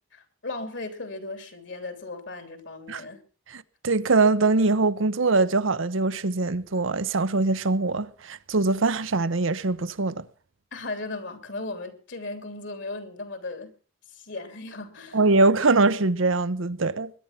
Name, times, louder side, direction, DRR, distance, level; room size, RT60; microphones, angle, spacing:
voice 1, 0.1-3.2 10.7-13.7 14.1-15.2, left 2 dB, 65° left, 3.1 m, -36 dB
voice 2, 3.5-10.2 15.1-17.1, right 3 dB, 75° right, 0.9 m, -23 dB
21.5 x 10.5 x 5.8 m
head